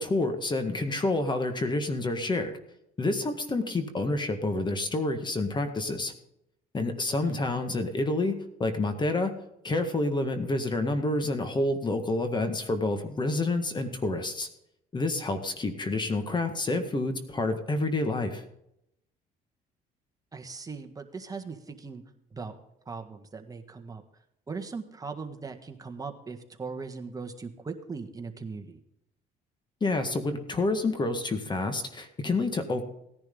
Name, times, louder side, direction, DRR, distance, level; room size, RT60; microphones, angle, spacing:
voice 1, 0.0-2.5 3.0-6.1 6.7-9.3 9.6-14.5 14.9-18.4 29.8-32.8, left 2 dB, 25° left, 8 dB, 1.8 m, -28 dB
voice 2, 20.3-22.0 22.3-22.5 22.8-24.0 24.5-28.8, right 4 dB, 20° right, 5 dB, 1.6 m, -39 dB
17.0 x 10.5 x 3.9 m, 0.79 s
cardioid pair, 110°, 17 cm